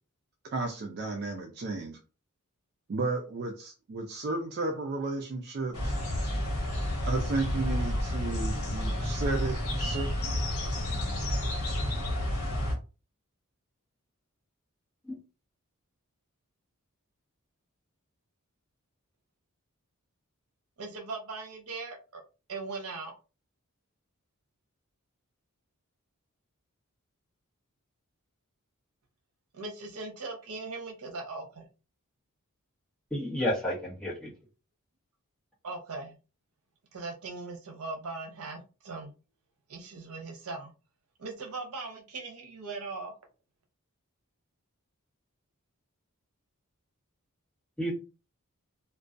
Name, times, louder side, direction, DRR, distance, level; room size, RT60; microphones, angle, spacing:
voice 1, 0.5-2.0 2.9-6.0 7.0-10.1, right 3 dB, 50° right, 2 dB, 0.4 m, -33 dB
sound 1, 5.7-12.7, left 1 dB, 75° left, 1.0 m, -30 dB
voice 2, 20.8-22.2 22.5-23.1 29.5-31.7 35.6-36.2 36.9-39.1 39.7-40.7 41.2-43.1, right 3 dB, 80° right, 4 dB, 0.7 m, -39 dB
voice 3, 33.1-34.3 47.8-47.9, equal, 5° left, -6 dB, 0.9 m, -31 dB
2.3 x 2.2 x 2.4 m, 0.32 s
head